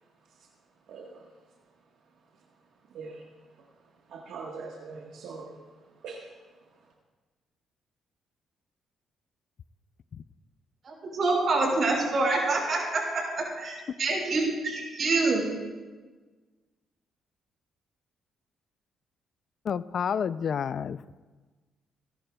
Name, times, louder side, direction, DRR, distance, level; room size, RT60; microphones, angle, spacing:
voice 1, 0.9-1.3 2.9-3.2 4.1-5.6 6.0-6.3, right 4 dB, 80° right, -1 dB, 1.4 m, -41 dB
voice 2, 10.8-15.4, right 3 dB, 50° right, -1 dB, 5.1 m, -26 dB
voice 3, 19.7-21.0, left 7 dB, 55° left, 16 dB, 0.3 m, -29 dB
29.5 x 11.0 x 2.3 m, 1.3 s
cardioid pair, 90°, 0 cm